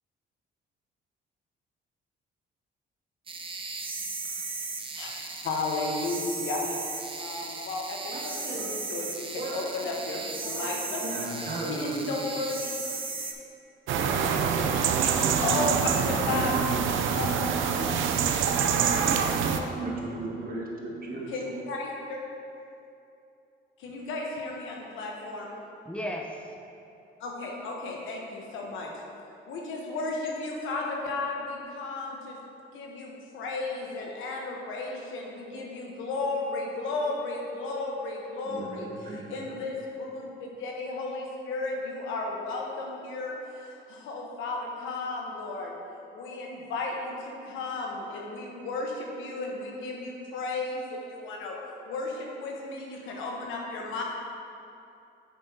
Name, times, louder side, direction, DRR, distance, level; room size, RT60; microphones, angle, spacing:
sound 1, 3.3-13.3, right 3 dB, 25° right, 0.7 m, -36 dB
voice 1, 5.4-6.8 7.2-11.0 11.7-12.9 15.4-16.7 17.1-17.8 18.7-18.8 19.4-19.7 21.3-22.2 23.8-25.4 27.2-28.9 29.5-32.4 32.7-38.9 39.3-45.7 46.1-51.6 51.8-54.0, left 3 dB, 90° left, -1 dB, 1.1 m, -34 dB
voice 2, 8.1-8.9 9.3-12.2 14.2-15.5 16.2-17.8 19.7-21.5 28.6-28.7 38.5-39.5, right 2 dB, 50° right, -3 dB, 1.4 m, -37 dB
sound 2, 13.9-19.6, right 7 dB, 80° right, 0.5 m, -25 dB
voice 3, 18.9-19.7 25.9-26.5, equal, 5° left, 0 dB, 0.8 m, -37 dB
8.0 x 5.9 x 2.8 m, 2.7 s
cardioid pair, 90°, 20 cm